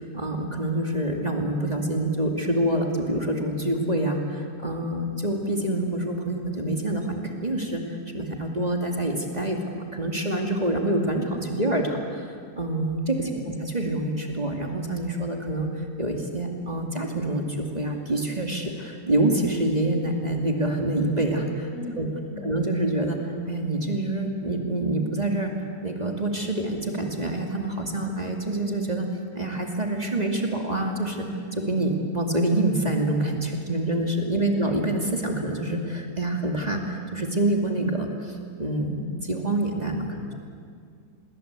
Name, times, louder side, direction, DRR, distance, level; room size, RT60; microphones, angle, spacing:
voice 1, 0.0-21.7 22.0-22.1 22.4-25.5 25.8-29.1 29.3-31.3 31.5-40.1, right 1 dB, 25° right, 2 dB, 2.4 m, -26 dB
voice 2, 21.7-22.6 34.3-34.7 40.1-40.4, left 2 dB, 65° left, 1 dB, 4.9 m, -40 dB
26.5 x 21.5 x 8.2 m, 2.2 s
omnidirectional pair, 1.7 m